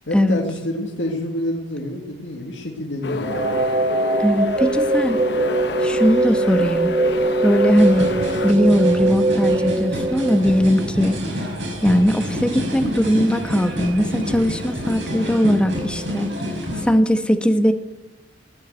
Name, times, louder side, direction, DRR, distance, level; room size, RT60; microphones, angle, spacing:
voice 1, 0.1-3.6, left 1 dB, 80° left, 0 dB, 2.1 m, -28 dB
Granular Voice, 3.0-8.5, left 3 dB, 65° left, 0.9 m, -29 dB
sound 1, 3.2-11.2, right 2 dB, 30° right, 0.7 m, -22 dB
voice 2, 4.2-5.2 5.8-6.9 7.4-8.1 8.4-11.2 11.8-16.3 16.8-17.7, equal, 5° left, 7 dB, 1.1 m, -19 dB
sound 2, 7.8-16.8, left 1 dB, 85° right, 6.5 m, -28 dB
17.0 x 9.3 x 8.0 m, 0.99 s
head